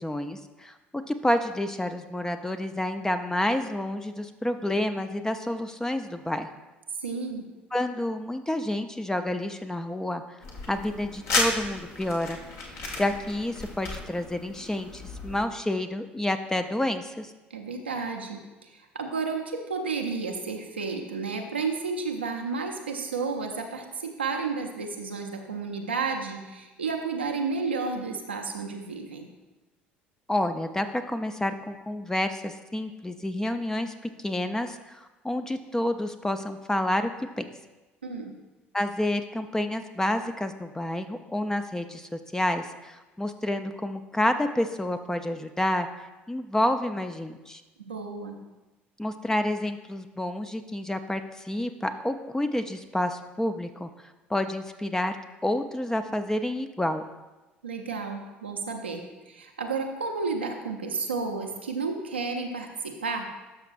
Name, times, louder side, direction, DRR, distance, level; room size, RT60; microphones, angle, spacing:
voice 1, 0.0-6.5 7.7-10.4 10.7-17.3 30.3-33.9 34.2-37.1 37.4-37.5 38.7-45.9 46.3-47.6 49.0-53.9 54.3-55.2 55.4-57.0, left 1 dB, 10° left, 8 dB, 0.5 m, -29 dB
voice 2, 7.0-7.5 17.5-29.3 38.0-38.3 47.8-48.4 57.6-63.3, right 4 dB, 85° right, 2 dB, 0.7 m, -32 dB
sound 1, 10.4-15.4, left 2 dB, 55° left, 1.5 m, -33 dB
12.5 x 6.0 x 2.5 m, 1.1 s
figure-of-eight pair, 60°, 6 cm